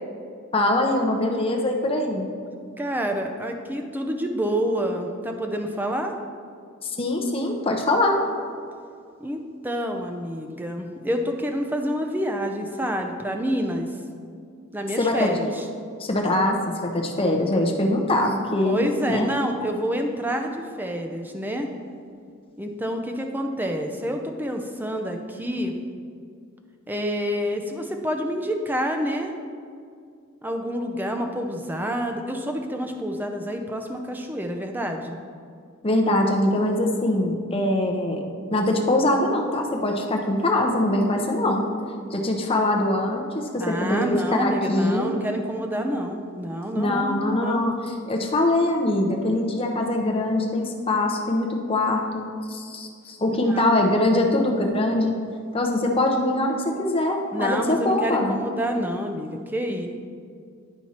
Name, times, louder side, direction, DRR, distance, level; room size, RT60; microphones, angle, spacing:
voice 1, 0.5-2.3 6.8-8.2 15.0-15.3 16.0-19.3 35.8-38.2 38.5-41.7 42.1-45.1 46.7-47.7 48.1-55.2 55.5-56.5 56.8-58.3, left 1 dB, 25° left, 1 dB, 0.8 m, -23 dB
voice 2, 2.8-6.1 9.2-13.9 14.7-15.7 18.6-21.7 22.6-25.7 26.9-29.3 30.4-35.2 43.6-47.6 53.5-53.7 57.3-59.9, equal, 10° right, 4 dB, 0.5 m, -28 dB
10.5 x 4.4 x 4.3 m, 2.2 s
head